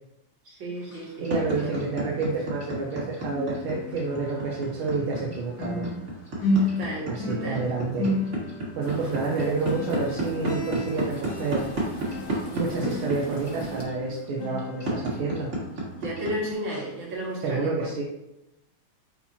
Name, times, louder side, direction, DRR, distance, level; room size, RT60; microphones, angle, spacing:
voice 1, 0.5-1.7 6.6-7.6 16.0-17.9, right 1 dB, 70° right, -4 dB, 2.7 m, -33 dB
sound 1, 0.8-2.9 3.2-16.3 16.7-16.9 17.4-17.5, left 1 dB, 65° left, 2.1 m, -33 dB
sound 2, 0.9-16.5, right 2 dB, 40° right, 1.6 m, -30 dB
voice 2, 1.2-5.9 6.4-6.7 7.1-8.1 8.8-11.7 12.0-12.2 12.5-15.5 17.4-18.0, right 4 dB, 85° right, -3 dB, 1.7 m, -29 dB
sound 3, 8.8-13.8, left 1 dB, 40° left, 1.2 m, -45 dB
8.5 x 4.4 x 2.8 m, 0.90 s
omnidirectional pair, 2.2 m